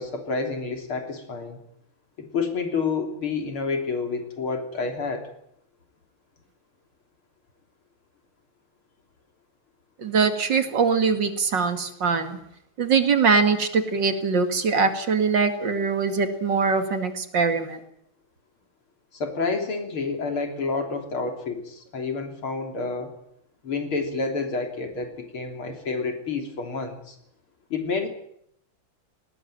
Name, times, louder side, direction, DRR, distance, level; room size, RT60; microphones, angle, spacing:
voice 1, 0.0-1.6 2.2-5.3 19.1-23.1 23.6-27.2 27.7-28.1, left 4 dB, 90° left, 5 dB, 4.2 m, -29 dB
voice 2, 10.0-12.4 12.8-17.8, right 5 dB, 60° right, 8 dB, 2.8 m, -22 dB
19.5 x 19.0 x 9.0 m, 0.73 s
omnidirectional pair, 2.3 m